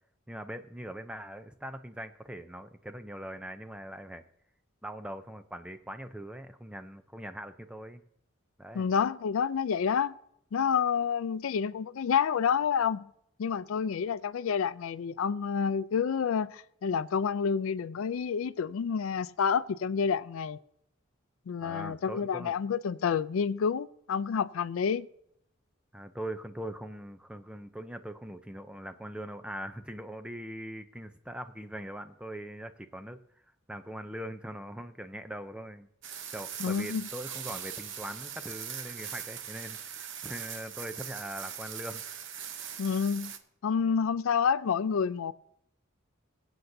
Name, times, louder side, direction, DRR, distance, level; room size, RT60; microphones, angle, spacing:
voice 1, 0.3-4.2 4.8-8.0 8.6-8.9 21.6-22.5 25.9-33.2 33.7-35.9 36.3-42.0, right 1 dB, 5° right, 0.4 m, -41 dB
voice 2, 8.7-10.1 10.5-13.1 13.4-20.6 21.5-25.1 36.6-37.1 42.8-43.3 43.6-45.3, left 6 dB, 80° left, 0.4 m, -29 dB
sound 1, 36.0-43.4, right 8 dB, 65° right, 0.8 m, -41 dB
22.0 x 7.9 x 2.7 m
head